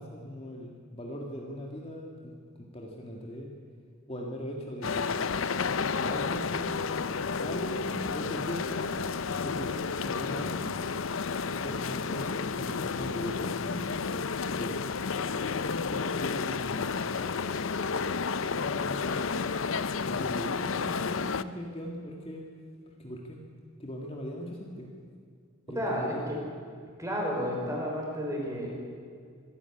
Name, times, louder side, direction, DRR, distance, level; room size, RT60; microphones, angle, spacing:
voice 1, 0.0-3.5 4.1-5.1 5.9-6.7 7.2-9.0 9.4-10.8 11.4-14.8 15.5-17.1 17.9-19.5 20.1-22.4 23.0-23.4 23.8-24.9 25.7-26.2, equal, 30° left, 0 dB, 2.0 m, -40 dB
sound 1, 4.8-21.4, left 5 dB, 65° left, 0.7 m, -31 dB
voice 2, 25.8-26.4 27.0-28.8, equal, 15° right, -2 dB, 5.2 m, -32 dB
26.0 x 11.0 x 9.9 m, 2.2 s
head